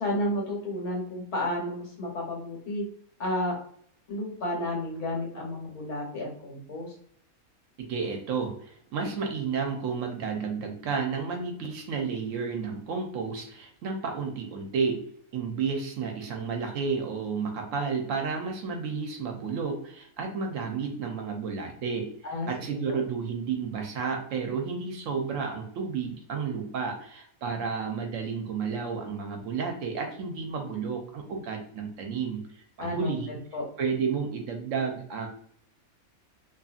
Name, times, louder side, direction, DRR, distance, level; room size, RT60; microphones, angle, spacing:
voice 1, 0.0-2.8 3.2-3.5 4.1-6.9 22.2-22.5 22.9-23.0 32.8-33.6, left 1 dB, 85° left, -1 dB, 1.4 m, -31 dB
voice 2, 7.8-15.1 15.3-22.1 22.5-33.3 33.8-35.3, right 5 dB, 70° right, 3 dB, 0.8 m, -31 dB
2.7 x 2.6 x 2.3 m, 0.62 s
omnidirectional pair, 1.5 m